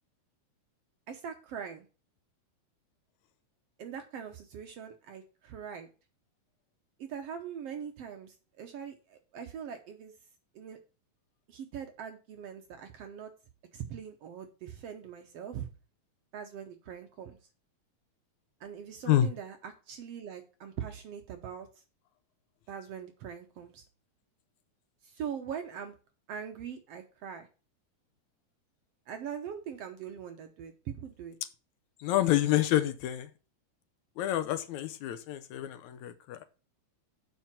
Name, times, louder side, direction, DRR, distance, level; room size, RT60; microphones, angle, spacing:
voice 1, 1.1-1.9 3.8-5.9 7.0-10.1 10.5-10.8 11.5-13.3 13.7-15.7 16.3-17.4 18.6-21.7 22.7-23.9 25.0-25.9 26.3-27.5 29.1-31.4, right 8 dB, 65° right, 6 dB, 1.7 m, -42 dB
voice 2, 32.0-33.3 34.2-36.4, left 12 dB, 75° left, 10 dB, 2.0 m, -28 dB
7.4 x 5.6 x 7.5 m, 0.34 s
omnidirectional pair, 3.6 m